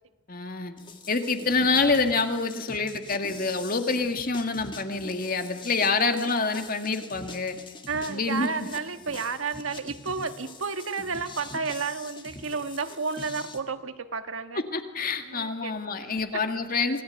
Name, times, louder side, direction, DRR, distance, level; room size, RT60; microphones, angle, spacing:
voice 1, 0.3-0.8 1.1-7.6 8.1-8.7 14.7-17.0, left 4 dB, 45° left, 6 dB, 2.2 m, -27 dB
sound 1, 0.8-13.6, left 3 dB, 25° left, 1.9 m, -44 dB
voice 2, 7.9-14.6 15.2-16.1, right 4 dB, 80° right, 9 dB, 1.4 m, -32 dB
26.5 x 18.5 x 9.3 m, 1.1 s
head